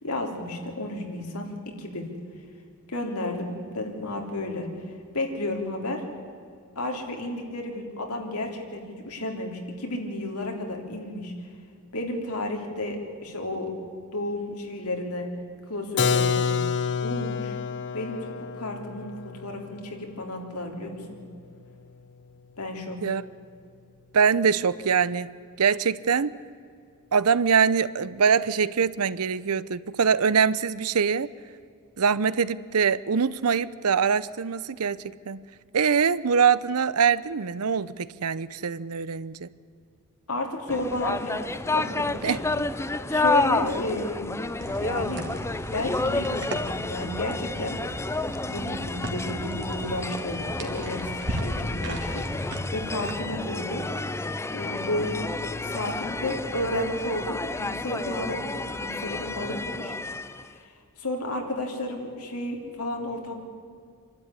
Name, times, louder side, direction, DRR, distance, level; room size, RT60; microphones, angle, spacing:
voice 1, 0.0-2.1 2.9-4.7 5.1-6.0 6.8-11.3 11.9-13.7 14.1-15.3 15.7-16.5 17.0-17.5 17.9-21.2 22.6-23.0 40.3-41.4 41.7-42.7 43.1-44.3 44.8-45.3 45.6-47.8 48.4-53.8 54.5-55.3 55.6-59.9 60.4-63.4, left 1 dB, 80° left, 3 dB, 3.3 m, -32 dB
Keyboard (musical), 16.0-21.6, left 5 dB, 55° left, 0.8 m, -29 dB
voice 2, 24.1-25.3 25.6-26.3 27.1-31.3 32.0-35.4 35.7-39.5 42.2-42.4, right 6 dB, 80° right, 17 dB, 0.7 m, -23 dB
sound 1, 40.7-60.5, left 2 dB, 10° left, 0.5 m, -30 dB
sound 2, 44.6-53.1, right 1 dB, 55° right, 2.5 m, -36 dB
27.0 x 12.5 x 9.9 m, 2.3 s
head